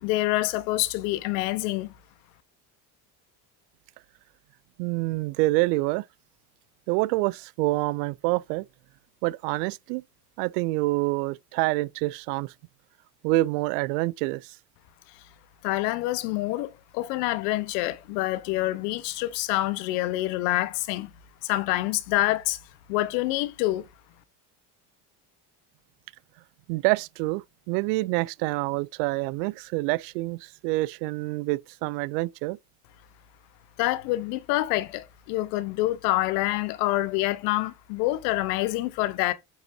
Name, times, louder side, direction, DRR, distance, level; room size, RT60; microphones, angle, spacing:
voice 1, 0.0-1.9 15.6-21.1 21.4-22.6 22.9-23.9 33.8-39.3, left 17 dB, 75° left, 1.1 m, -26 dB
voice 2, 4.8-6.0 6.9-8.7 9.2-10.0 10.4-12.5 13.2-14.5 26.7-32.6, right 21 dB, 75° right, 0.5 m, -27 dB
8.9 x 5.4 x 2.7 m
supercardioid pair, 85°, 49 cm